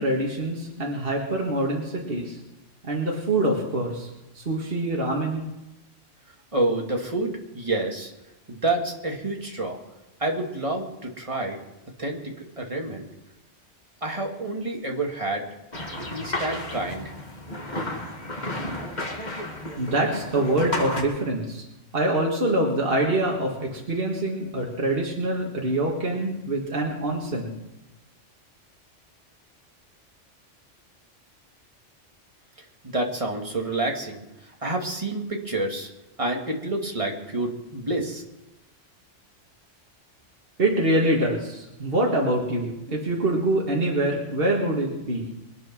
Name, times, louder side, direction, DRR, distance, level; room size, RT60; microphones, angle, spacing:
voice 1, 0.0-2.4 2.8-4.1 4.3-5.5 19.8-21.6 21.9-27.5 40.6-45.3, right 1 dB, 50° right, -2 dB, 2.1 m, -25 dB
voice 2, 6.5-8.1 8.5-9.8 10.2-11.6 12.0-13.1 14.0-15.5 15.9-17.1 32.8-34.2 34.6-35.9 36.2-38.2, right 2 dB, 25° right, 0 dB, 2.2 m, -28 dB
sound 1, 15.7-21.0, left 1 dB, 35° left, 2.4 m, -32 dB
23.5 x 8.5 x 6.1 m, 0.96 s
omnidirectional pair, 1.2 m